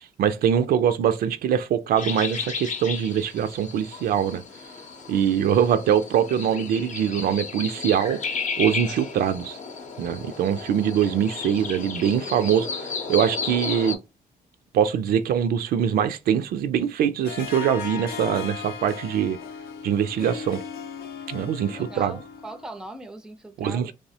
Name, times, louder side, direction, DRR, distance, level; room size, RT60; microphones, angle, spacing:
voice 1, 0.0-4.4 5.1-8.2 8.6-9.6 10.0-14.0 14.7-19.4 19.8-20.6 21.3-22.2 23.6-23.9, right 9 dB, 75° right, 0.4 m, -23 dB
sound 1, 2.0-14.0, left 5 dB, 50° left, 0.7 m, -33 dB
Harp, 17.2-22.7, left 7 dB, 85° left, 0.5 m, -37 dB
voice 2, 21.7-23.9, right 1 dB, 5° right, 0.4 m, -40 dB
3.2 x 2.0 x 2.7 m
cardioid pair, 100°, 16 cm